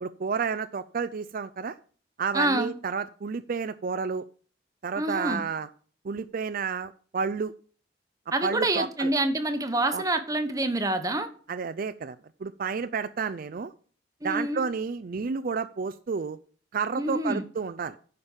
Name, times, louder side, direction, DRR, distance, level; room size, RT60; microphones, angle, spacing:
voice 1, 0.0-1.8 2.2-4.2 4.8-5.7 6.0-7.5 8.4-9.1 9.9-10.0 11.5-12.2 12.4-13.7 14.2-16.4 16.7-18.0, right 5 dB, 55° right, 0.4 m, -31 dB
voice 2, 2.3-2.7 5.0-5.4 8.3-11.3 14.2-14.7 17.0-17.4, right 2 dB, 20° right, 1.1 m, -27 dB
9.6 x 5.3 x 7.2 m
head